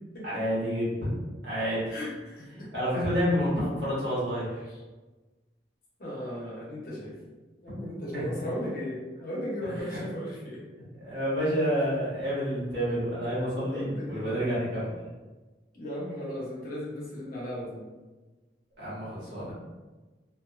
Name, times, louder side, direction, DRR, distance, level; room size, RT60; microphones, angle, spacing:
voice 1, 0.2-1.1 1.4-1.9 2.7-4.6 8.1-8.2 9.6-10.0 11.0-14.9 18.8-19.5, equal, 65° right, -10 dB, 1.3 m, -29 dB
voice 2, 1.9-2.7 4.7-4.8 6.0-7.2 7.6-10.6 13.6-14.5 15.7-17.9, equal, 55° left, -6 dB, 0.9 m, -36 dB
2.6 x 2.3 x 2.5 m, 1.2 s
head